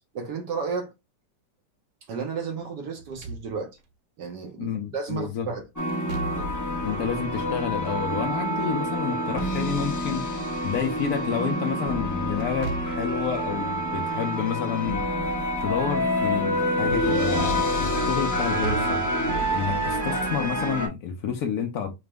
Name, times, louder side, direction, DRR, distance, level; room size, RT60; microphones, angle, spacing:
voice 1, 0.1-0.9 2.1-3.8 4.2-5.6, right 5 dB, 70° right, 1.2 m, -32 dB
Slam / Thump thud, 3.0-3.9 5.9-6.8 9.0-10.1 12.4-13.2 15.3-15.9 16.2-16.3 18.3-19.2, right 3 dB, 85° right, 0.6 m, -37 dB
voice 2, 4.6-5.5 6.8-10.3 10.6-15.1 15.6-19.0 19.5-21.9, left 7 dB, 65° left, 1.0 m, -29 dB
sound 1, 5.8-20.9, equal, 20° left, 0.5 m, -27 dB
4.8 x 2.1 x 3.3 m
omnidirectional pair, 2.1 m